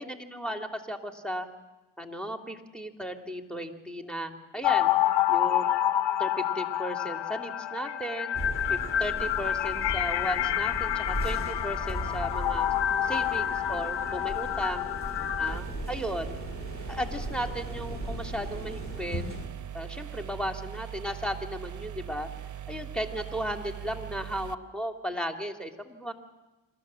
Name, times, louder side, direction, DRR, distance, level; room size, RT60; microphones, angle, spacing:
voice 1, 0.0-1.5 2.0-4.9 5.3-5.7 6.2-8.4 8.7-12.7 13.0-14.9 15.4-16.4 16.9-19.2 19.7-22.3 22.7-26.1, equal, ahead, 5 dB, 2.6 m, -35 dB
sound 1, 4.6-15.6, left 11 dB, 60° left, 0.8 m, -28 dB
sound 2, 8.3-19.5, equal, 25° left, 2.7 m, -37 dB
sound 3, 15.5-24.6, right 11 dB, 40° right, 0.8 m, -40 dB
26.5 x 13.0 x 7.6 m, 1.1 s
supercardioid pair, 55°, 47 cm